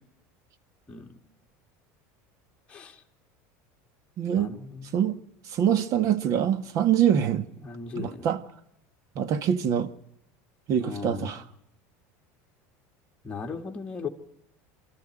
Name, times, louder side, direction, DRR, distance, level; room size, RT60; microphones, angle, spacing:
voice 1, 0.9-1.2 2.7-3.0 4.4-5.0 7.6-8.3 10.8-11.4 13.2-14.1, left 5 dB, 15° left, 2.1 m, -37 dB
voice 2, 4.2-4.5 4.9-5.2 5.5-7.5 7.9-8.4 9.1-9.9 10.7-11.4, right 9 dB, 45° right, 1.7 m, -24 dB
25.0 x 14.0 x 9.0 m
supercardioid pair, 135°, 8 cm